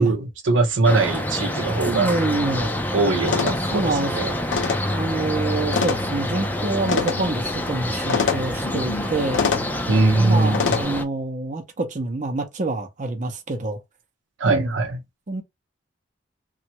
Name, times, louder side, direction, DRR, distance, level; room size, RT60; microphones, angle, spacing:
voice 1, 0.0-2.1 2.9-4.3 9.9-10.8 14.4-15.0, right 3 dB, 80° right, 0.7 m, -21 dB
sound 1, 0.8-11.0, left 1 dB, 10° left, 0.4 m, -27 dB
voice 2, 1.9-2.8 3.4-4.1 4.9-9.4 10.2-13.8 14.4-14.8 15.3-15.4, right 2 dB, 40° right, 0.7 m, -26 dB
sound 2, 3.2-10.8, left 5 dB, 80° left, 0.5 m, -28 dB
3.0 x 2.3 x 2.8 m
head